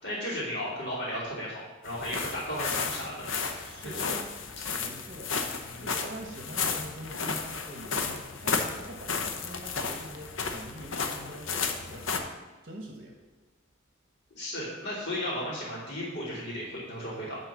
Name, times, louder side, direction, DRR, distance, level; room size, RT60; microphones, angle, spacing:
voice 1, 0.0-4.2 4.7-4.9 5.6-5.9 14.3-17.4, left 1 dB, 55° left, -11 dB, 3.2 m, -35 dB
sound 1, 1.8-12.2, left 5 dB, 80° left, 0.8 m, -33 dB
voice 2, 3.6-4.1 4.8-5.3 5.8-12.3 12.6-13.2, right 1 dB, 45° right, 2 dB, 1.1 m, -44 dB
10.5 x 4.4 x 6.3 m, 1.3 s
head